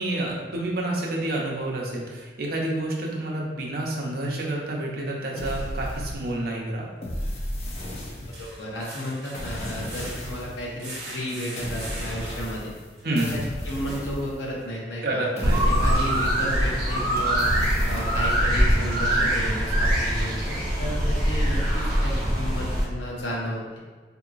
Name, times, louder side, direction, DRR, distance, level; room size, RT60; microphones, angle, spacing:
voice 1, 0.0-6.9 13.0-13.3 15.0-15.6, right 1 dB, 55° right, -2 dB, 0.6 m, -29 dB
sound 1, 4.5-4.6 7.0-14.6 15.2-15.3 15.8-15.9, right 1 dB, 70° right, 0.9 m, -42 dB
sound 2, 5.4-6.5 7.0-8.6 9.3-10.7 11.6-12.9 13.2-14.8 15.4-16.7 17.2-18.4, left 1 dB, 35° left, 0.4 m, -34 dB
voice 2, 8.4-12.7 13.1-17.5 17.9-23.6, equal, 80° left, -3 dB, 0.8 m, -33 dB
sound 3, 15.4-22.8, equal, 15° right, 1.2 m, -23 dB
3.7 x 2.8 x 2.4 m, 1.5 s
head